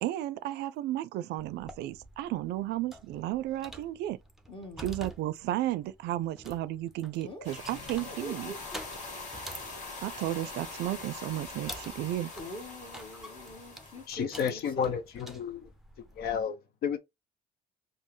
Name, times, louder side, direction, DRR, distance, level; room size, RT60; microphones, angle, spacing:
voice 1, 0.0-4.2 4.8-8.5 10.0-12.3, right 14 dB, 80° right, 0.4 m, -33 dB
sound 1, 1.4-16.4, right 1 dB, ahead, 0.6 m, -49 dB
voice 2, 4.5-5.0 7.2-7.5 8.1-8.8 12.4-14.9, equal, 30° left, 1.3 m, -44 dB
sound 2, 7.4-14.1, left 3 dB, 45° left, 1.5 m, -43 dB
voice 3, 14.1-15.7 16.1-17.0, left 7 dB, 65° left, 0.7 m, -32 dB
5.3 x 2.0 x 3.1 m
cardioid pair, 110°, 17 cm